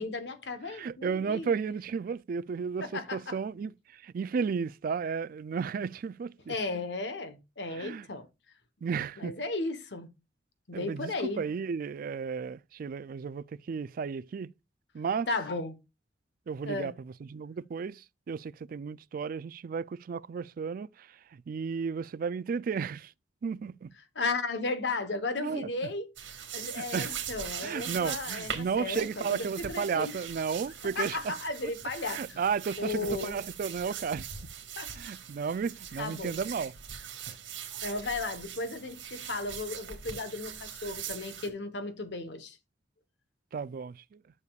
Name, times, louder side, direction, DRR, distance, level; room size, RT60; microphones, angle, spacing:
voice 1, 0.0-1.6 2.8-3.4 6.5-8.3 9.2-10.1 10.7-11.4 15.3-15.8 16.6-16.9 24.1-26.1 26.5-30.2 30.8-32.4 32.8-33.4 34.8-34.9 36.0-36.4 37.8-42.6, left 3 dB, 65° left, 1.1 m, -35 dB
voice 2, 0.7-6.5 7.7-8.1 8.8-9.3 10.7-14.5 14.9-15.3 16.5-16.9 17.3-21.1 21.5-23.1 23.4-23.9 25.4-25.7 26.8-27.2 27.6-31.3 32.1-34.3 35.0-36.7 37.3-37.4 43.5-44.2, right 6 dB, 50° right, 0.3 m, -33 dB
sound 1, 26.2-41.5, right 8 dB, 90° right, 1.9 m, -41 dB
11.0 x 6.8 x 2.3 m
head